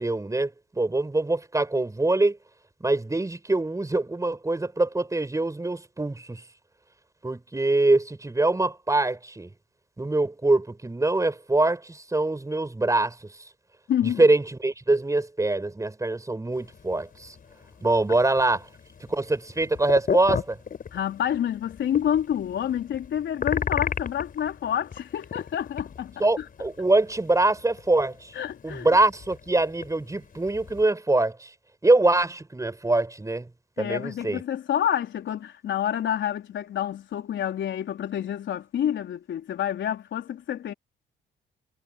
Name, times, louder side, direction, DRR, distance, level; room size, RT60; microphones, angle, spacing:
voice 1, 0.0-2.4 2.8-6.4 7.2-9.5 10.0-13.2 14.2-17.3 17.8-18.7 19.0-20.6 26.2-28.3 28.6-31.5 31.8-33.5 33.8-34.4, right 2 dB, 15° right, 7.0 m, -24 dB
voice 2, 13.9-14.3 20.9-26.5 28.3-28.9 33.8-40.7, left 10 dB, 70° left, 3.9 m, -28 dB
sound 1, 16.5-30.9, left 6 dB, 45° left, 4.2 m, -36 dB
cardioid pair, 90°, 20 cm